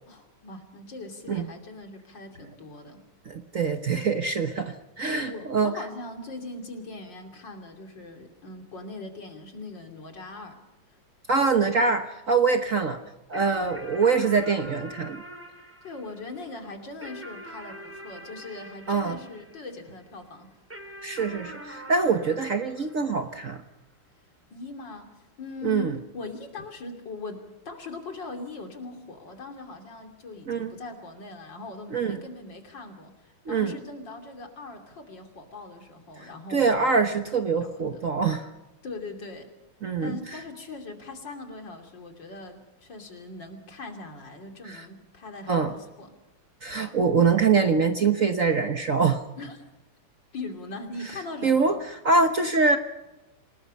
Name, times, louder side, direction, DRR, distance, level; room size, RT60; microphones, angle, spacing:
voice 1, 0.1-3.0 5.2-10.6 15.8-20.5 24.5-36.9 37.6-38.1 38.8-39.5 40.0-46.1 49.4-49.6 50.3-51.8, left 3 dB, 60° left, 4 dB, 3.5 m, -40 dB
voice 2, 3.3-5.7 11.3-13.0 13.3-15.2 18.9-19.2 21.0-23.6 25.6-26.0 30.5-30.7 31.9-32.2 33.5-33.7 36.5-38.5 39.8-40.2 44.6-44.8 45.5-45.7 46.6-49.2 51.4-52.8, right 4 dB, 45° right, 6 dB, 1.2 m, -24 dB
sound 1, 13.3-20.0 20.7-23.5, right 1 dB, 5° right, 3.1 m, -44 dB
27.5 x 19.0 x 5.5 m, 0.98 s
omnidirectional pair, 2.3 m